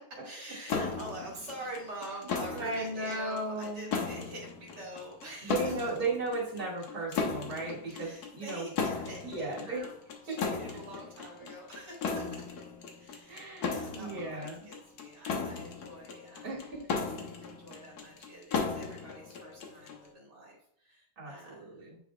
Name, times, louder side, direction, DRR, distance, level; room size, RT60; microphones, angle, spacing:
voice 1, 0.2-5.9 7.9-9.9 10.2-12.5 12.9-16.6 17.4-21.8, right 1 dB, 85° right, -4 dB, 2.4 m, -46 dB
sound 1, 0.7-20.1, left 5 dB, 70° left, 1.5 m, -37 dB
voice 2, 2.5-3.9 5.4-8.7 9.2-9.8 10.3-10.4 13.3-14.6 16.4-17.0 21.2-22.0, right 2 dB, 60° right, -4 dB, 2.6 m, -36 dB
9.0 x 5.0 x 2.3 m, 0.67 s
omnidirectional pair, 1.8 m